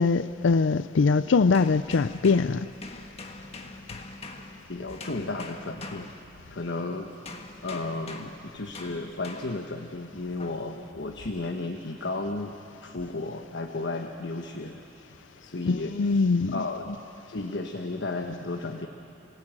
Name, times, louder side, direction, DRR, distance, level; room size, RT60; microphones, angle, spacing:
voice 1, 0.0-2.7 15.7-16.6, left 4 dB, 90° left, 0.5 m, -22 dB
sound 1, 1.5-6.8 7.3-9.8 10.4-10.7, left 2 dB, 35° left, 1.6 m, -44 dB
voice 2, 4.7-6.1 6.5-7.1 7.6-12.6 12.8-14.8 15.4-17.0 17.3-18.9, left 2 dB, 65° left, 1.3 m, -33 dB
28.0 x 18.5 x 8.8 m
head